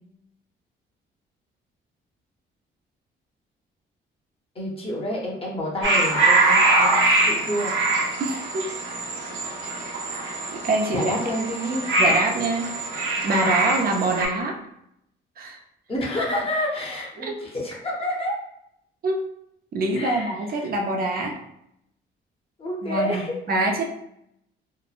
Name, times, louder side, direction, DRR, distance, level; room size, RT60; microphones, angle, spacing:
voice 1, 4.5-7.7 10.9-11.9 15.9-18.3 19.9-20.3 20.6-20.7 22.6-23.3, equal, 30° left, -2 dB, 0.8 m, -29 dB
sound 1, 5.8-14.3, right 2 dB, 70° right, 0.8 m, -23 dB
voice 2, 8.2-8.7 10.5-11.1 12.0-14.6 15.4-15.6 17.2-17.3 19.0-19.2 19.7-21.4 22.8-23.2 23.5-23.9, right 2 dB, 50° right, 1 dB, 0.4 m, -25 dB
3.0 x 2.1 x 2.4 m, 0.77 s
cardioid pair, 90°, 20 cm